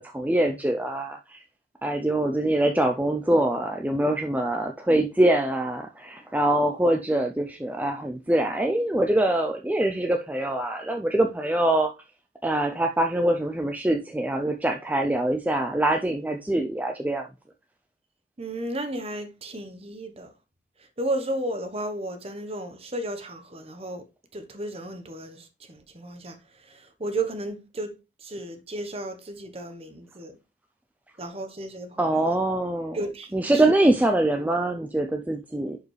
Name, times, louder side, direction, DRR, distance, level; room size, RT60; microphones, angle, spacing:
voice 1, 0.0-1.4 1.8-11.9 12.4-17.3 32.0-33.0 33.3-35.8, right 1 dB, 10° right, 0.4 m, -24 dB
voice 2, 18.4-20.3 21.0-24.0 24.3-26.4 26.6-27.9 28.2-30.4 31.2-32.4 32.9-33.6, right 1 dB, 30° right, 1.1 m, -33 dB
11.0 x 4.8 x 3.3 m
head